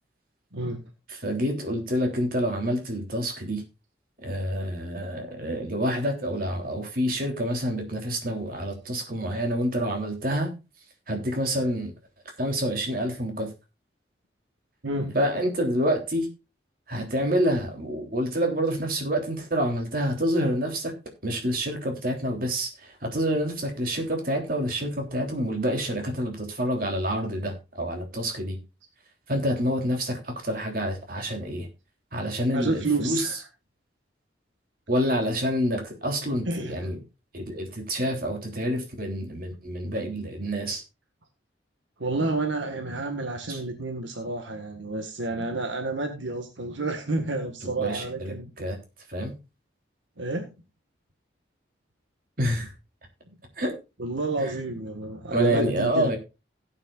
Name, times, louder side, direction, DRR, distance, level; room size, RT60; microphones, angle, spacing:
voice 1, 0.5-0.8 14.8-15.2 32.5-33.3 36.5-36.9 42.0-48.5 50.2-50.5 54.0-56.1, right 2 dB, 80° right, 1.7 m, -30 dB
voice 2, 1.1-3.6 4.2-10.5 11.1-11.9 12.3-13.5 15.1-16.3 16.9-20.9 21.2-28.6 29.3-31.7 32.1-33.4 34.9-37.0 37.3-40.8 43.5-43.6 47.6-48.8 49.1-49.3 52.4-52.7 53.6-53.8 54.4-54.6 55.3-56.2, equal, 50° right, 3.3 m, -27 dB
17.0 x 9.1 x 2.5 m
head